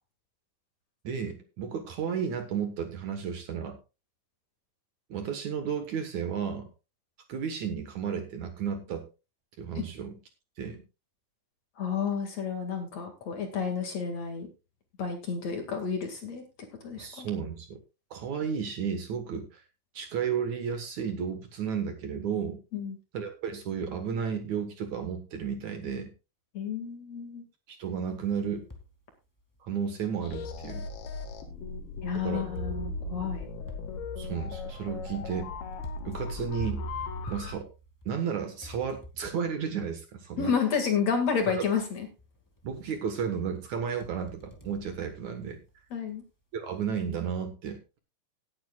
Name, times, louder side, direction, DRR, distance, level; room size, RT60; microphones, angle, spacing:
voice 1, 1.0-3.8 5.1-6.7 7.3-9.1 9.6-10.2 10.6-10.8 17.0-17.8 18.1-19.6 19.9-22.6 23.1-26.1 27.7-28.7 29.6-30.9 32.1-32.5 34.2-35.5 36.0-36.8 37.3-37.7 38.1-40.5 41.5-41.6 42.6-45.6 46.5-48.0, right 7 dB, 60° right, 6 dB, 2.4 m, -33 dB
voice 2, 11.8-14.5 15.0-16.4 16.8-17.3 22.7-23.0 26.5-27.4 32.0-33.4 40.4-42.1 45.9-46.2, left 6 dB, 50° left, 4 dB, 2.9 m, -30 dB
sound 1, 28.1-29.0 29.6-29.7 30.6-30.7 32.5-38.3 38.6-39.6 40.8-40.9 41.4-41.8 42.2-43.0 43.3-45.7, right 2 dB, 10° left, 0.9 m, -44 dB
sound 2, 30.2-37.5, left 4 dB, 90° left, 3.6 m, -38 dB
18.5 x 9.6 x 2.4 m, 0.29 s
omnidirectional pair, 4.3 m